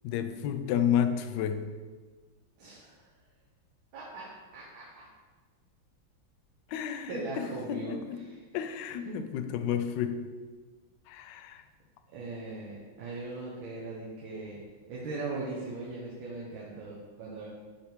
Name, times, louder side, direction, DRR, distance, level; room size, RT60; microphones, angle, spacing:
voice 1, 0.0-1.7 6.7-8.2 8.5-10.3 11.1-11.6, left 9 dB, 75° left, 9 dB, 1.1 m, -31 dB
voice 2, 2.6-3.1 3.9-5.1 7.1-7.9 8.2-8.3 9.1-9.2 12.1-14.6 14.9-17.5, right 3 dB, 85° right, -5 dB, 1.9 m, -39 dB
8.4 x 3.4 x 4.5 m, 1.4 s
omnidirectional pair, 2.1 m